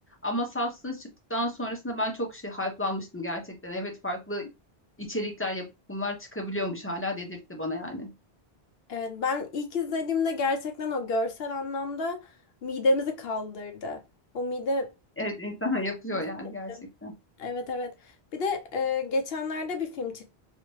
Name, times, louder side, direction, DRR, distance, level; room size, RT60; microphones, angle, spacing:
voice 1, 0.2-4.5 5.0-8.1 15.2-16.7 17.0-17.1, left 1 dB, 15° left, 0.8 m, -32 dB
voice 2, 8.9-12.2 12.6-14.0 14.3-14.9 16.1-16.2 17.4-17.9 18.3-20.3, left 3 dB, 70° left, 0.9 m, -29 dB
3.3 x 2.8 x 3.1 m
omnidirectional pair, 1.1 m